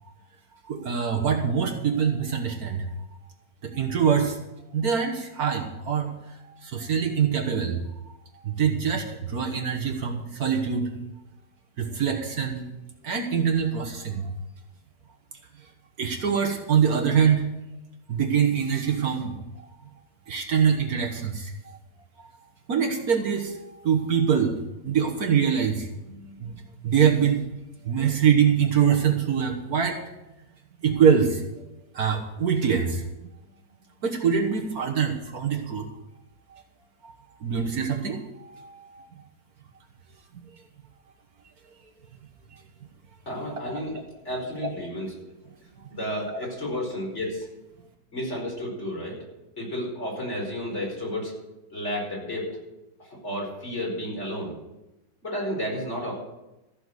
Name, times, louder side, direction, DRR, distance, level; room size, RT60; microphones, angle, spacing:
voice 1, 0.7-2.9 3.6-4.4 4.7-6.1 6.4-7.8 8.4-10.9 11.8-12.6 13.0-14.3 16.0-17.5 18.1-19.7 20.3-21.5 22.2-22.3 22.7-24.5 24.8-27.4 27.8-30.0 30.8-31.4 31.9-33.0 34.0-35.9 37.0-37.1 37.4-39.0 43.5-43.6 44.6-44.7 45.9-46.0 46.3-46.4, right 7 dB, 60° right, 2 dB, 1.6 m, -24 dB
voice 2, 43.3-44.0 44.3-45.2 45.9-47.5 48.1-49.2 49.6-51.3 51.7-52.5 53.0-54.5 55.2-56.1, left 1 dB, 40° left, -3 dB, 5.2 m, -31 dB
14.5 x 6.6 x 8.0 m, 0.97 s
omnidirectional pair, 1.9 m